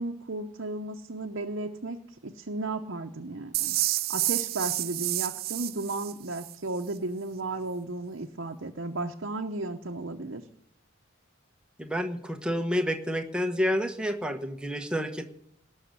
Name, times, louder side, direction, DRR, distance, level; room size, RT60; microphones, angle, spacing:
voice 1, 0.0-3.8 4.1-10.4, right 2 dB, 60° right, 2 dB, 0.8 m, -34 dB
sound 1, 3.5-6.6, right 16 dB, 45° right, 0.5 m, -29 dB
voice 2, 11.8-15.2, equal, 5° right, 6 dB, 1.0 m, -29 dB
18.5 x 6.5 x 9.5 m, 0.68 s
head